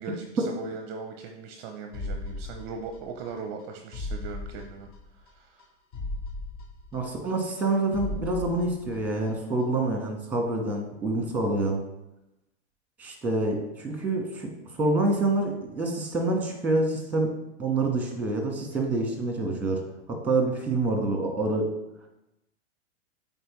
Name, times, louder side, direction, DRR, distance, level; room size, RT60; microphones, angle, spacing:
voice 1, 0.0-4.9 5.2-5.7, right 4 dB, 30° right, 5 dB, 0.6 m, -39 dB
sound 1, 1.9-3.3 3.6-3.7 3.9-5.3 5.6-5.7 5.9-7.6 7.9-9.3 9.6-9.7, left 2 dB, 25° left, 0.5 m, -37 dB
voice 2, 6.9-11.8 13.0-17.3 17.6-19.8 20.1-21.7, right 2 dB, 5° right, 2 dB, 1.2 m, -27 dB
7.8 x 4.1 x 3.1 m, 0.92 s
hypercardioid pair, 130°, 36 cm